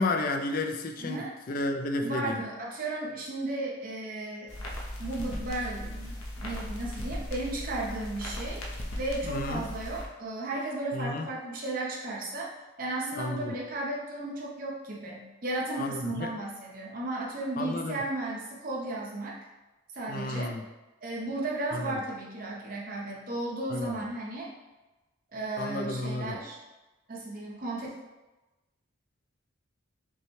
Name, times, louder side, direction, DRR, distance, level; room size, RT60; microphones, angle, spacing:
voice 1, 0.0-2.4 9.2-9.6 10.9-11.3 13.2-13.5 15.8-16.3 17.6-18.0 20.1-20.6 21.7-21.9 23.7-24.0 25.6-26.4, left 2 dB, 40° left, 4 dB, 0.3 m, -32 dB
voice 2, 1.0-1.3 2.0-4.5 5.0-8.6 9.0-12.5 12.8-19.3 19.9-20.5 21.0-24.5 25.3-26.6 27.1-27.9, right 2 dB, 40° right, -3 dB, 0.7 m, -34 dB
sound 1, 4.5-10.1, left 1 dB, 85° left, 0.7 m, -37 dB
5.3 x 2.2 x 3.1 m, 1.1 s
head